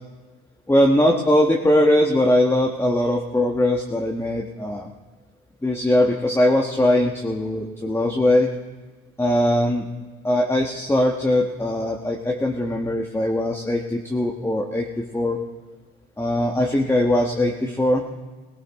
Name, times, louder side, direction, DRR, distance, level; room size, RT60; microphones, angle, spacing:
voice 1, 0.7-4.9 5.6-8.5 9.2-9.8 10.2-15.4 16.2-18.0, left 1 dB, 10° left, 0 dB, 1.3 m, -20 dB
17.5 x 17.5 x 3.6 m, 1.2 s
cardioid pair, 90°, 30 cm